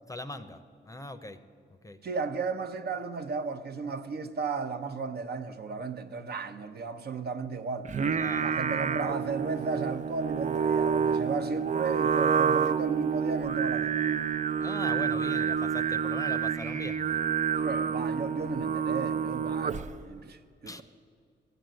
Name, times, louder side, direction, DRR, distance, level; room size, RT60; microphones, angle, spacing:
voice 1, 0.1-1.4 1.8-2.0 8.0-8.6 14.6-17.2 20.7-20.8, left 2 dB, 15° left, 0.8 m, -41 dB
voice 2, 2.0-7.9 8.4-14.0 17.6-20.8, right 4 dB, 55° right, 0.9 m, -34 dB
Singing, 7.9-20.0, right 6 dB, 40° right, 0.5 m, -28 dB
15.0 x 8.0 x 9.0 m
cardioid pair, 95°, 20 cm